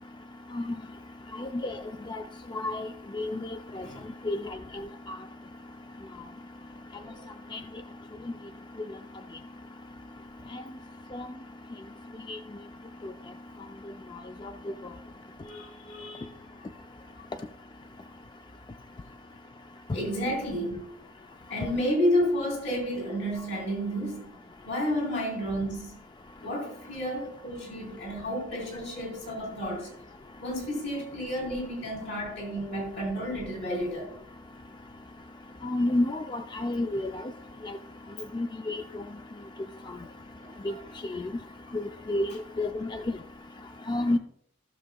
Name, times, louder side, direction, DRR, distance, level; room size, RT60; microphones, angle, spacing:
voice 1, 1.4-1.7 2.1-2.2 2.5-2.9 3.1-3.5 3.8-3.9 4.3-4.4 5.1-5.2 7.5-7.6 10.5-10.6 12.3-12.4 35.6-37.0 37.6-37.7 38.3-38.8 40.6-40.7 41.1-41.2 41.7-41.8 42.1-42.3 42.6-42.7 43.9-44.2, left 1 dB, 25° left, 0.4 m, -29 dB
voice 2, 15.4-16.3 19.9-20.9 21.5-24.3 24.6-26.0 26.4-29.9 30.4-34.2 39.8-40.0 40.4-40.8, equal, 70° left, 3.8 m, -31 dB
15.0 x 6.7 x 2.3 m
head